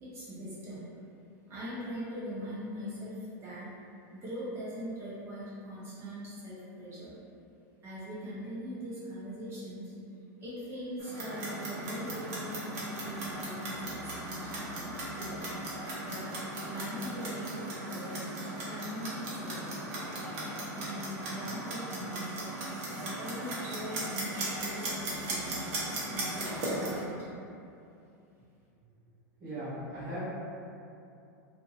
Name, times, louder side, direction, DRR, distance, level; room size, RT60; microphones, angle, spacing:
voice 1, 0.0-0.9 1.5-3.7 4.1-7.1 7.8-9.9 10.4-15.4 16.0-16.3 16.6-20.0 20.7-22.5 23.0-25.7 26.1-27.3, equal, 25° right, -9 dB, 0.7 m, -41 dB
Clock, 11.0-27.0, right 1 dB, 55° right, 0.9 m, -37 dB
voice 2, 29.4-30.2, right 1 dB, 40° right, -11 dB, 1.2 m, -38 dB
2.7 x 2.6 x 2.3 m, 2.6 s
supercardioid pair, 140°, 10 cm